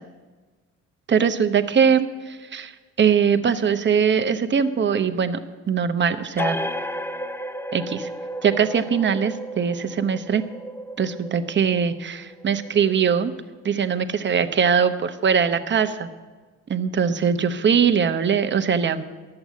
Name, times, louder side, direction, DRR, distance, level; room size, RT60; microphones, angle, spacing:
voice 1, 1.1-2.1 2.4-5.4 5.7-6.6 7.7-8.1 8.4-10.4 11.0-13.3 13.6-16.1 16.7-19.0, right 7 dB, 40° right, 9 dB, 0.9 m, -21 dB
sound 1, 6.4-13.6, equal, 10° left, 0.5 m, -33 dB
11.0 x 7.9 x 8.3 m, 1.4 s
cardioid pair, 90°, 30 cm